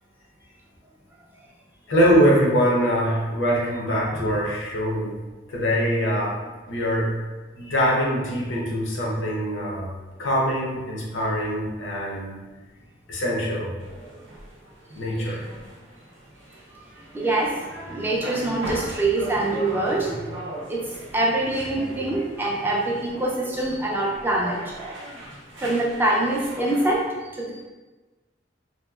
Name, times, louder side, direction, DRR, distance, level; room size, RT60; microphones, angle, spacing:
voice 1, 1.9-5.1 5.5-6.3 6.7-7.1 7.6-9.9 10.2-12.3 13.1-13.7 14.9-15.4, equal, 85° left, -3 dB, 0.7 m, -23 dB
sound 1, 13.8-27.0, right 1 dB, 80° right, 0.7 m, -39 dB
voice 2, 17.1-20.4 20.7-24.8 25.1-25.2 25.6-27.6, right 2 dB, 10° right, -3 dB, 0.3 m, -25 dB
2.8 x 2.3 x 2.3 m, 1.2 s
head